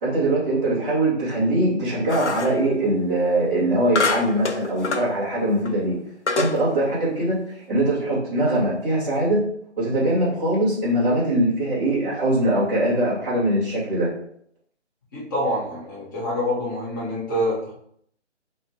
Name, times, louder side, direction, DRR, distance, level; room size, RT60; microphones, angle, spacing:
voice 1, 0.0-5.9 6.3-7.4 7.7-9.4 9.8-14.1, right 1 dB, 5° right, -15 dB, 0.8 m, -22 dB
sound 1, 2.1-2.6 4.0-5.1 5.6-5.7 6.3-6.6, left 3 dB, 70° left, 0.7 m, -25 dB
voice 2, 15.1-17.7, equal, 15° left, -8 dB, 1.4 m, -26 dB
4.6 x 3.0 x 3.4 m, 0.69 s
figure-of-eight pair, 160°, 35 cm